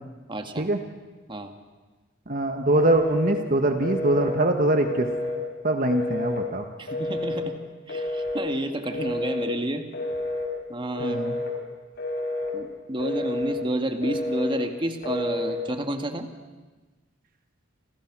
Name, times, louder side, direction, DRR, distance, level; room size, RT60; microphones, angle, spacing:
voice 1, 0.3-0.7 1.3-1.5 6.8-7.6 7.9-9.9 10.7-11.3 12.5-16.3, right 1 dB, 25° right, 6 dB, 2.0 m, -30 dB
voice 2, 2.3-5.1 5.6-6.6 11.0-11.4, right 1 dB, 45° right, 5 dB, 1.6 m, -23 dB
Telephone, 2.8-3.4 3.8-4.4 4.8-5.4 5.9-6.4 6.9-7.4 7.9-8.5 8.9-9.5 9.9-10.5 11.0-11.5 12.0-12.5 13.0-13.6 14.0-14.6 15.0-15.6, left 2 dB, 55° left, 5.1 m, -29 dB
29.5 x 27.5 x 6.3 m, 1.2 s
head